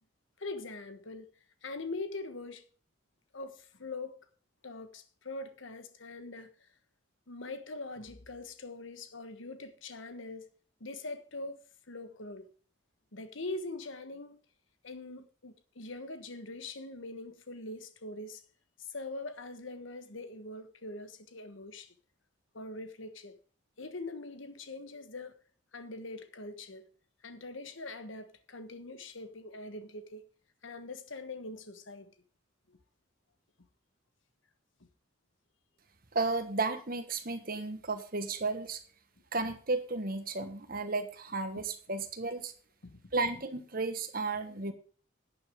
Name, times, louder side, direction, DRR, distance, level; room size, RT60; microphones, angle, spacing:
voice 1, 0.4-1.3 1.6-2.6 3.3-4.2 4.6-6.5 7.3-10.5 10.8-11.6 11.9-12.5 13.1-14.4 14.8-18.4 18.8-21.9 22.5-23.4 23.8-25.3 25.7-26.9 27.2-30.2 30.6-32.1 32.7-32.8 42.8-43.1, left 2 dB, 75° left, 1.3 m, -42 dB
voice 2, 36.1-38.8 39.3-42.5 43.1-44.7, right 3 dB, 45° right, 1.3 m, -33 dB
11.5 x 9.7 x 3.6 m
head